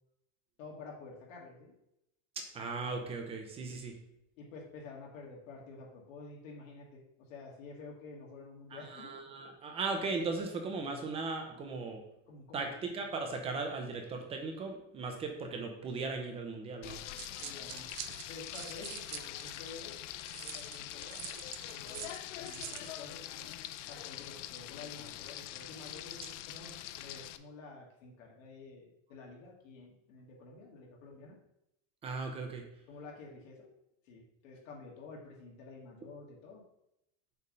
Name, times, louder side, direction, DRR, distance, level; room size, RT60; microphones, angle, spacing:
voice 1, 0.6-1.7 4.4-9.1 12.3-12.8 17.4-17.9 18.3-23.4 23.9-31.4 32.9-33.7 34.0-36.6, left 3 dB, 90° left, -2 dB, 2.3 m, -50 dB
voice 2, 2.5-3.9 8.7-12.0 12.5-17.0 32.0-32.6, right 3 dB, 15° right, 3 dB, 0.6 m, -37 dB
Frying (food), 16.8-27.4, left 13 dB, 70° left, 0.5 m, -44 dB
sound 1, 16.9-19.7 20.2-22.9, right 12 dB, 60° right, 0.6 m, -46 dB
6.8 x 3.5 x 5.2 m, 0.83 s
supercardioid pair, 175°, 38 cm